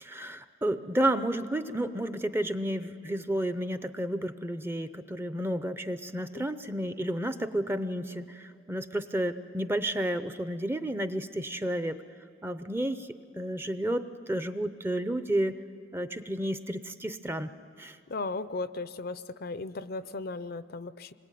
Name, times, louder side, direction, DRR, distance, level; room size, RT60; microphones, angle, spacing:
voice 1, 0.0-12.0 12.4-15.6 15.9-17.5 17.8-18.0, right 1 dB, 10° right, 11 dB, 0.6 m, -31 dB
voice 2, 18.1-21.1, left 3 dB, 50° left, 14 dB, 0.5 m, -36 dB
26.0 x 21.5 x 9.2 m, 2.4 s
head